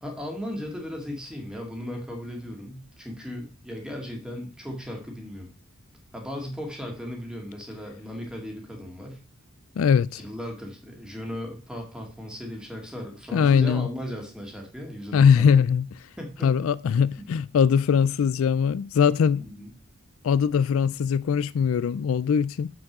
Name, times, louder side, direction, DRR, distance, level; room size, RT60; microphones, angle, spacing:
voice 1, 0.0-5.5 6.1-9.2 10.1-15.6 16.2-16.7 19.4-19.7, equal, 5° right, 2.0 m, -36 dB
voice 2, 9.8-10.2 13.3-13.9 15.1-15.9 16.4-19.4 20.2-22.7, left 7 dB, 65° left, 0.3 m, -21 dB
7.1 x 6.1 x 6.0 m
head